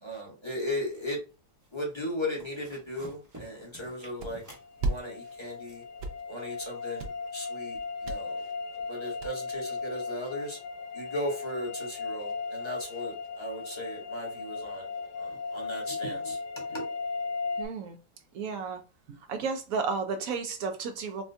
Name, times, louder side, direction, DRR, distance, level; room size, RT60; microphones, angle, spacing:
voice 1, 0.0-1.2 1.7-4.4 4.8-5.8 6.3-8.4 8.7-10.6 10.9-14.9 15.2-16.9, left 1 dB, 20° left, 0.9 m, -37 dB
sound 1, 0.8-1.3 1.6-1.9 2.2-5.8, equal, 15° right, 0.6 m, -51 dB
sound 2, 4.2-4.3 4.8-5.0 5.3-5.6 5.8-6.7 7.0-7.3 7.7-8.2 8.5-8.6 8.8-8.9 9.2-9.8, right 3 dB, 85° right, 0.5 m, -32 dB
sound 3, 4.5-17.7, left 4 dB, 70° left, 0.7 m, -37 dB
voice 2, 17.6-18.0 18.3-18.8 19.1-21.2, right 5 dB, 70° right, 0.9 m, -33 dB
4.1 x 2.3 x 2.6 m
omnidirectional pair, 1.8 m